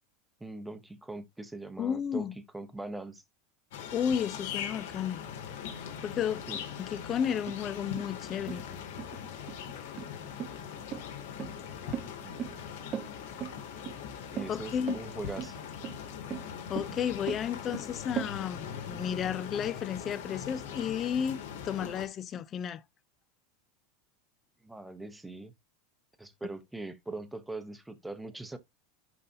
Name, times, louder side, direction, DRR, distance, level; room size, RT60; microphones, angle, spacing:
voice 1, 0.4-3.2 6.5-6.6 11.8-12.3 14.3-15.6 24.6-25.5 26.2-28.6, right 2 dB, 5° right, 0.9 m, -41 dB
voice 2, 1.8-2.3 3.9-5.2 6.0-6.4 6.8-8.6 14.5-15.0 16.7-22.8, left 8 dB, 25° left, 0.5 m, -32 dB
sound 1, 3.7-22.1, left 8 dB, 70° left, 2.6 m, -41 dB
sound 2, 7.5-18.3, right 9 dB, 25° right, 0.4 m, -39 dB
11.0 x 3.9 x 2.8 m
supercardioid pair, 155°, 0 cm